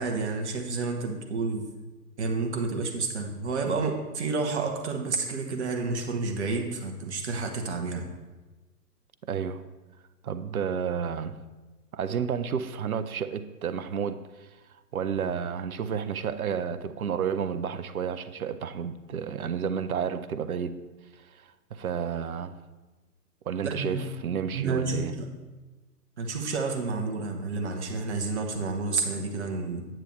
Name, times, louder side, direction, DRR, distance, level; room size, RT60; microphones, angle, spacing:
voice 1, 0.0-1.7 2.2-8.1 23.6-24.1 24.5-25.3 26.2-29.9, right 3 dB, 45° right, 1.1 m, -30 dB
voice 2, 9.2-9.7 10.2-11.4 11.9-14.5 14.9-20.9 21.1-22.6 23.5-25.1, right 7 dB, 60° right, 0.6 m, -31 dB
8.9 x 8.4 x 3.1 m
figure-of-eight pair, 125°, 48 cm